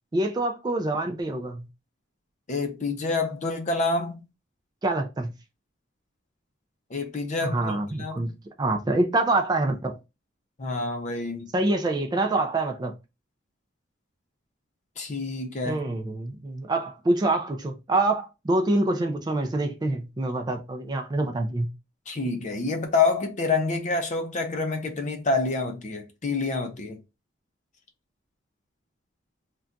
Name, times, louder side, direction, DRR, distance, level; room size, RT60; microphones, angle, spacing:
voice 1, 0.1-1.7 4.8-5.3 7.4-10.0 11.5-12.9 15.6-21.7, right 2 dB, 20° right, 0.3 m, -26 dB
voice 2, 2.5-4.2 6.9-8.3 10.6-11.5 15.0-15.8 22.1-27.0, left 3 dB, 40° left, 0.5 m, -27 dB
2.4 x 2.2 x 3.8 m
head